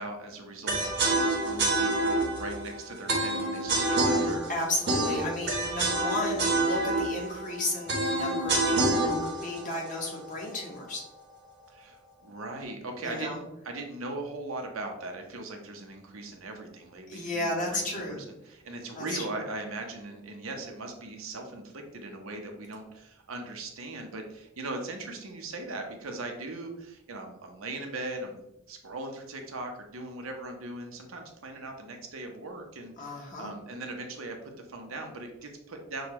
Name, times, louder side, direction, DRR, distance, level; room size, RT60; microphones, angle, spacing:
voice 1, 0.0-4.5 11.7-12.0 12.2-36.1, right 2 dB, 85° right, 3 dB, 0.8 m, -39 dB
sound 1, 0.7-10.7, right 2 dB, 55° right, 0.9 m, -27 dB
voice 2, 4.5-11.0 13.0-13.4 17.1-18.2 18.9-19.4 33.0-33.5, left 1 dB, 40° left, -2 dB, 1.2 m, -33 dB
6.3 x 2.3 x 3.0 m, 0.84 s
head